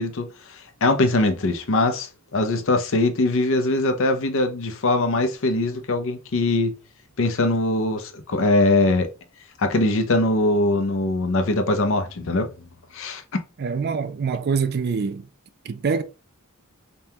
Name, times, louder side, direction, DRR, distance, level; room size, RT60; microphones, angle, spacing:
voice 1, 0.0-6.7 7.2-9.1 9.6-12.5 12.9-13.4, left 2 dB, 60° left, 0.6 m, -22 dB
voice 2, 13.6-15.3 15.6-16.0, right 5 dB, 45° right, 0.4 m, -25 dB
5.3 x 2.3 x 2.8 m
head